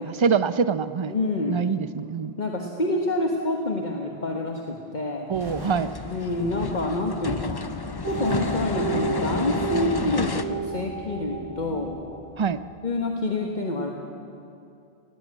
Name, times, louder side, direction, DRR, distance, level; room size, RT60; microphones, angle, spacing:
voice 1, 0.0-1.1 1.5-2.3 5.3-5.9 12.4-12.6, right 6 dB, 35° right, 13 dB, 0.6 m, -24 dB
voice 2, 1.1-1.6 2.4-5.4 6.1-7.7 8.0-12.0 12.8-13.9, left 2 dB, 45° left, 1 dB, 1.5 m, -27 dB
sound 1, 5.3-10.4, left 3 dB, 25° left, 0.6 m, -30 dB
sound 2, 5.4-6.7 8.1-9.2, right 1 dB, 60° right, 7.2 m, -44 dB
sound 3, 8.0-13.1, right 4 dB, 20° right, 1.1 m, -32 dB
19.5 x 17.0 x 9.1 m, 2.7 s
omnidirectional pair, 1.0 m